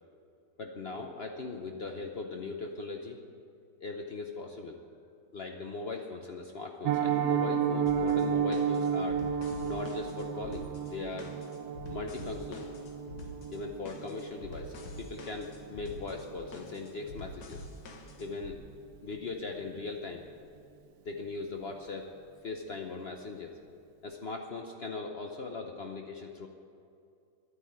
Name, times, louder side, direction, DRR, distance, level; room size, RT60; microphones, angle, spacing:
voice 1, 0.6-3.2 3.8-4.8 5.3-9.2 9.6-11.3 11.9-12.7 13.5-17.6 18.2-18.6 19.0-20.2 21.0-22.1 22.4-23.6 24.0-26.5, left 3 dB, 80° left, 3 dB, 0.5 m, -39 dB
Piano, 6.8-17.7 18.0-18.2 18.5-18.7 19.1-19.3 19.6-19.7, right 7 dB, 65° right, 1.0 m, -33 dB
sound 1, 7.9-18.5, left 2 dB, 60° left, 1.8 m, -47 dB
11.5 x 9.7 x 8.9 m, 2.5 s
omnidirectional pair, 2.3 m